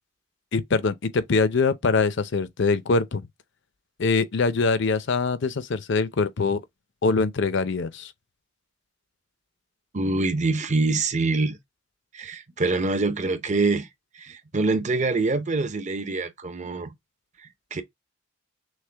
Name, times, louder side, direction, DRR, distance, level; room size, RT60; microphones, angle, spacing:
voice 1, 0.5-3.2 4.0-6.6 7.0-8.1, left 4 dB, 65° left, 0.6 m, -23 dB
voice 2, 9.9-11.6 12.1-13.9 14.2-16.9 17.7-17.8, right 3 dB, 40° right, 0.8 m, -25 dB
6.4 x 2.1 x 3.3 m
head